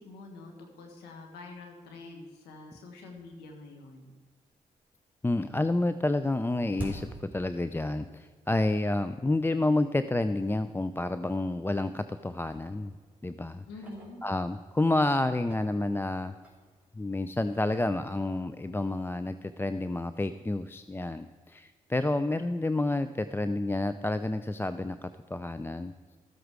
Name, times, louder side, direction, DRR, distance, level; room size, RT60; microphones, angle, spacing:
voice 1, 0.0-4.1 13.7-14.2, left 3 dB, 90° left, 4 dB, 1.3 m, -46 dB
sound 1, 4.5-5.1 5.3-8.2 8.5-8.6 9.4-9.5 10.0-10.1 10.4-10.6 11.3-11.8 12.2-14.8 15.2-19.2, right 2 dB, 10° right, 3.4 m, -48 dB
voice 2, 5.2-12.9 13.2-13.6 14.2-16.3 16.9-25.9, left 2 dB, 15° left, 12 dB, 0.4 m, -29 dB
13.5 x 7.9 x 4.8 m, 1.5 s
hypercardioid pair, 40°, 16 cm